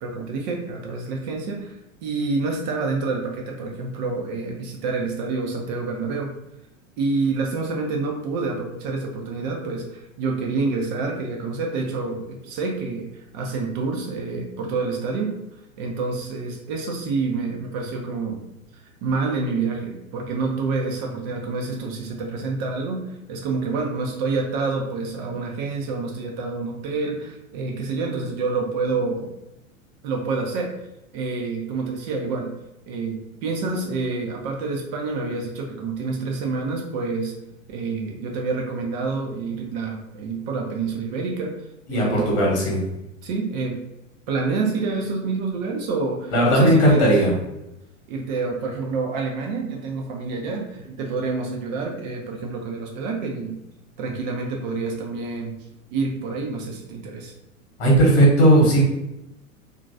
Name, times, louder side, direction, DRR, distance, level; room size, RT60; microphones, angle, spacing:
voice 1, 0.0-6.3 7.0-15.4 15.8-18.4 19.0-29.3 30.0-30.7 31.1-32.5 32.9-37.3 37.7-41.6 41.9-42.5 43.2-43.8 44.3-47.2 48.1-53.6 54.0-55.5 55.9-57.3, right 4 dB, 35° right, 1 dB, 0.5 m, -27 dB
voice 2, 41.9-42.8 46.3-47.3 57.8-58.8, right 1 dB, 40° left, -3 dB, 1.1 m, -16 dB
2.9 x 2.5 x 2.5 m, 0.89 s
figure-of-eight pair, 90°, 41 cm